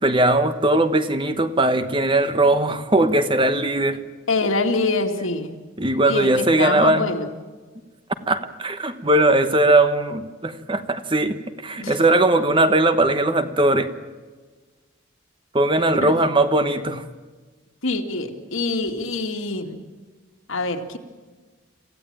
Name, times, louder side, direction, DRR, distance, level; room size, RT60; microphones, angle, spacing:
voice 1, 0.0-4.0 5.8-7.1 8.3-13.9 15.5-17.0, right 2 dB, 25° right, 10 dB, 1.2 m, -19 dB
voice 2, 4.3-5.6 6.0-7.3 11.8-12.0 16.0-16.2 17.8-19.8 20.5-21.0, left 3 dB, 85° left, 4 dB, 2.4 m, -25 dB
27.0 x 16.0 x 8.9 m, 1.4 s
head